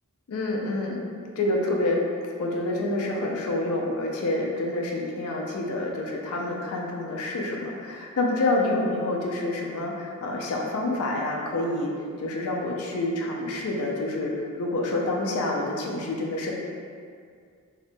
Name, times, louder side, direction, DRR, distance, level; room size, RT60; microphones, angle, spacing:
voice 1, 0.3-2.0 2.4-11.9 12.2-16.5, left 2 dB, 70° left, -1 dB, 0.4 m, -28 dB
2.7 x 2.1 x 2.6 m, 2.2 s
head